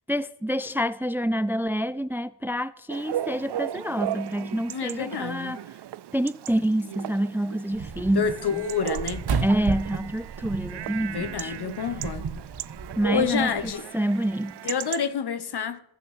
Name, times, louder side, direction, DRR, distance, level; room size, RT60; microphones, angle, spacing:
voice 1, 0.1-5.6 6.1-8.3 9.4-11.5 13.0-13.5 13.9-14.6, right 1 dB, 5° right, 0.4 m, -27 dB
Chatter / Bark / Livestock farm animals working animals, 2.9-15.1, right 12 dB, 90° right, 0.5 m, -36 dB
voice 2, 4.7-5.6 8.1-9.2 11.1-12.3 13.1-13.8 14.6-15.8, left 7 dB, 75° left, 1.2 m, -28 dB
sound 1, 7.7-13.7, right 4 dB, 70° right, 1.4 m, -34 dB
14.5 x 6.0 x 7.4 m
wide cardioid pair, 95°, 40 cm